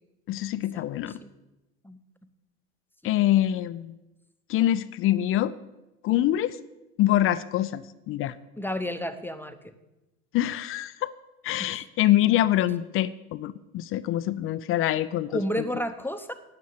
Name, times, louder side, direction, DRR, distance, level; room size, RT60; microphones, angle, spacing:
voice 1, 0.3-1.2 3.0-3.9 4.5-5.5 6.0-6.6 7.0-8.3 10.3-11.1 11.4-15.6, left 13 dB, 30° left, 15 dB, 0.4 m, -25 dB
voice 2, 8.6-9.7 11.6-11.7 15.3-16.3, equal, 5° left, 8 dB, 0.8 m, -31 dB
9.6 x 8.3 x 9.4 m, 1.0 s
hypercardioid pair, 90°, 47 cm